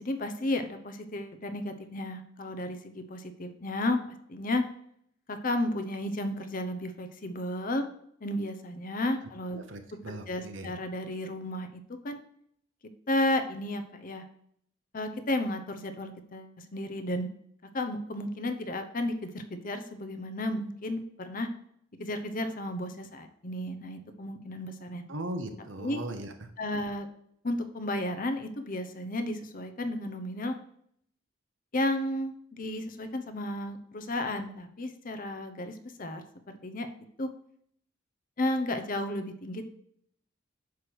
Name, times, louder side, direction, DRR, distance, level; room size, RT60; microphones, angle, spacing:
voice 1, 0.0-4.0 4.3-4.6 5.3-7.9 8.2-9.6 10.1-12.2 13.1-14.2 14.9-17.3 17.7-21.5 22.0-25.0 25.8-26.0 26.6-27.1 27.4-30.5 31.7-36.9 37.2-37.3 38.4-39.6, left 1 dB, 45° left, 8 dB, 0.8 m, -33 dB
voice 2, 9.5-10.7 25.1-26.5, right 1 dB, 75° right, 7 dB, 1.0 m, -38 dB
9.3 x 3.3 x 6.2 m, 0.68 s
head